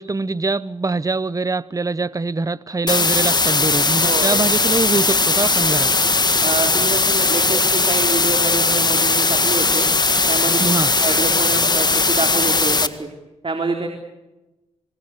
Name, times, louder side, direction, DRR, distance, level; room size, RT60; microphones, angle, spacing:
voice 1, 0.0-5.9 10.6-10.9, right 3 dB, 30° right, 0.9 m, -23 dB
sound 1, 2.9-12.9, left 3 dB, 35° left, 1.8 m, -18 dB
voice 2, 4.0-4.3 6.4-9.9 10.3-13.1 13.4-13.9, right 3 dB, 45° right, 3.9 m, -26 dB
26.5 x 22.5 x 8.2 m
cardioid pair, 55°, 12 cm